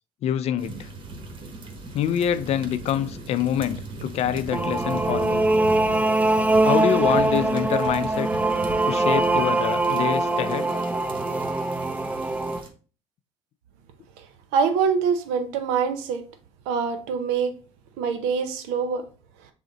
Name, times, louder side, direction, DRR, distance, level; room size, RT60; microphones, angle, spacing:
voice 1, 0.2-0.9 1.9-5.4 6.6-8.3 8.8-10.7, left 10 dB, 55° left, 0.4 m, -26 dB
sound 1, 0.6-12.7, right 2 dB, 45° right, 1.3 m, -38 dB
sound 2, 4.5-12.6, right 2 dB, 10° right, 0.5 m, -22 dB
voice 2, 14.5-16.3 16.7-17.5 18.0-19.0, right 6 dB, 85° right, 0.7 m, -24 dB
6.3 x 2.1 x 3.9 m
supercardioid pair, 75°, 13 cm